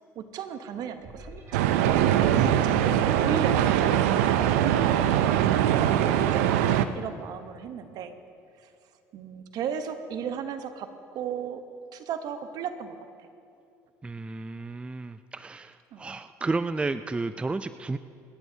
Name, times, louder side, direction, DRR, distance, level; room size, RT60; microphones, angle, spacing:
voice 1, 0.1-1.7 2.3-2.8 3.2-8.2 8.6-8.7 9.1-11.6 11.9-13.3 15.9-16.1, right 7 dB, 60° right, 9 dB, 1.0 m, -36 dB
sound 1, 1.0-3.6 4.2-4.3, right 2 dB, 40° right, 2.7 m, -39 dB
sound 2, 1.5-6.9, right 11 dB, 85° right, 0.5 m, -22 dB
voice 2, 14.0-18.0, right 3 dB, 15° right, 12 dB, 0.4 m, -32 dB
26.5 x 10.5 x 2.8 m, 2.6 s
supercardioid pair, 80°, 7 cm